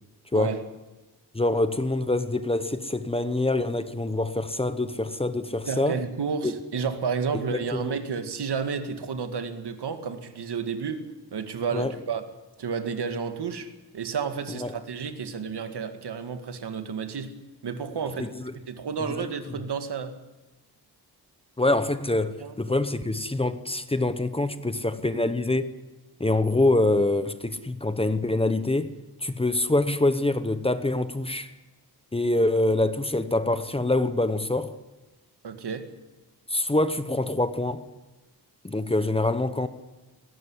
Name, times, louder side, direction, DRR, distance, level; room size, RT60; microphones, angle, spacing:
voice 1, 1.3-6.0 6.4-6.5 7.3-8.0 11.7-11.9 14.5-14.7 18.2-18.5 19.2-19.3 21.6-25.7 26.2-28.9 29.2-31.5 32.1-34.8 36.5-37.8 38.6-39.7, left 2 dB, 15° left, 0.9 m, -25 dB
voice 2, 5.7-11.0 11.3-12.2 12.6-17.3 17.6-18.3 18.7-20.2 22.4-22.6 35.4-35.9, right 6 dB, 80° right, 2.2 m, -31 dB
20.5 x 18.5 x 9.7 m
wide cardioid pair, 165°, 39 cm